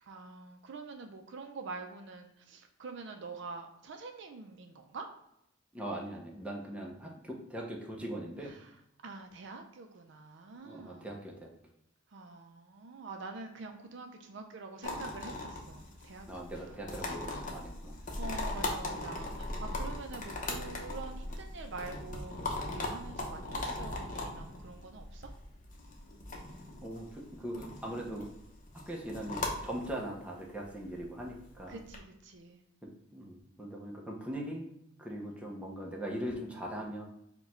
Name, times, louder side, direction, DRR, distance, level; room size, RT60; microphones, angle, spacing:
voice 1, 0.0-5.1 8.4-8.7 9.0-11.1 12.1-16.9 18.2-25.3 31.7-32.6, right 3 dB, 60° right, 4 dB, 0.5 m, -46 dB
voice 2, 5.7-8.6 10.6-11.5 16.3-18.0 26.8-28.3 28.9-31.8 32.8-34.6 35.0-37.0, right 1 dB, 5° right, -2 dB, 0.6 m, -40 dB
sound 1, 14.8-32.0, left 2 dB, 40° left, 0.7 m, -39 dB
4.6 x 2.3 x 4.3 m, 0.78 s
head